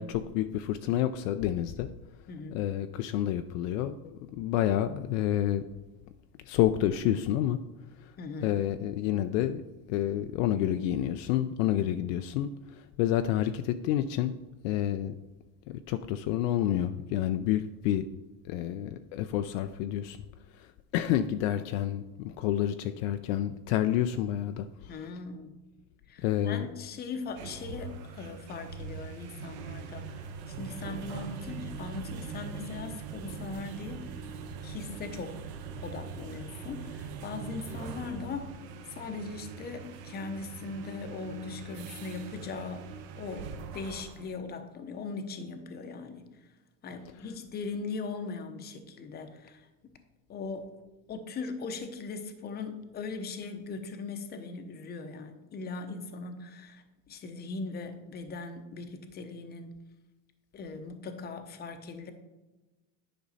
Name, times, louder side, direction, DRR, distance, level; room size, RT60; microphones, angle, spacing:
voice 1, 0.0-1.9 2.5-5.6 6.5-7.6 8.4-9.6 9.9-14.3 14.6-15.1 15.7-18.1 18.5-20.2 20.9-24.7 26.2-26.7, left 12 dB, 55° left, 9 dB, 0.5 m, -29 dB
voice 2, 2.3-2.6 8.2-8.6 24.9-25.5 26.1-30.1 30.5-34.1 34.6-35.4 35.8-38.5 38.9-42.9 43.2-46.2 46.8-49.7 50.3-50.8 51.1-59.8 60.5-62.1, left 4 dB, 20° left, 8 dB, 0.7 m, -39 dB
sound 1, 27.2-44.3, right 6 dB, 50° right, 1.0 m, -42 dB
10.0 x 5.3 x 4.0 m, 1.1 s
supercardioid pair, 135°, 46 cm